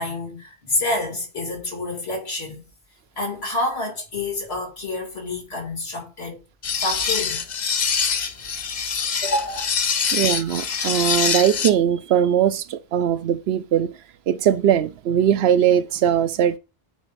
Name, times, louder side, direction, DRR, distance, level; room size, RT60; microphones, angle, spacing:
voice 1, 0.0-2.6 3.2-6.4 6.8-7.4 9.2-9.6, left 2 dB, 75° left, 2.7 m, -28 dB
sound 1, 6.6-11.7, left 6 dB, 50° left, 0.8 m, -24 dB
voice 2, 10.1-13.9 14.3-16.6, right 9 dB, 75° right, 0.8 m, -20 dB
9.1 x 4.8 x 2.5 m
omnidirectional pair, 1.1 m